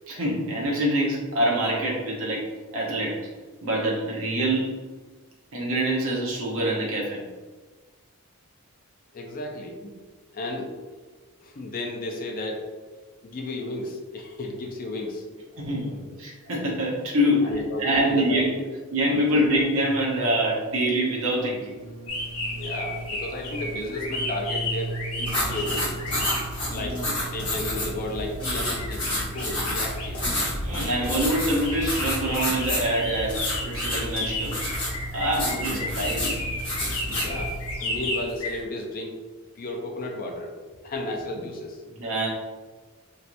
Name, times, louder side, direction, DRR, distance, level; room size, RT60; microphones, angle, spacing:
voice 1, 0.1-2.5 2.7-3.2 3.6-4.9 5.5-7.2 15.6-18.5 18.9-21.7 26.7-27.0 30.6-34.6 35.1-36.4 42.0-42.3, right 1 dB, 65° right, -2 dB, 0.8 m, -25 dB
voice 2, 9.1-9.9 10.3-10.7 11.4-12.7 13.2-16.2 17.4-18.7 19.1-19.5 22.5-26.3 26.7-27.0 27.3-30.2 35.2-35.8 37.1-37.5 37.8-39.2 39.6-40.5 40.8-41.9, left 1 dB, 40° left, 1 dB, 0.4 m, -33 dB
sound 1, 19.8-25.8, right 2 dB, 20° right, 0.8 m, -39 dB
sound 2, 22.1-38.6, left 2 dB, 70° left, 0.7 m, -34 dB
sound 3, 25.2-37.7, left 1 dB, 20° left, 1.1 m, -30 dB
3.1 x 2.9 x 2.5 m, 1.3 s
head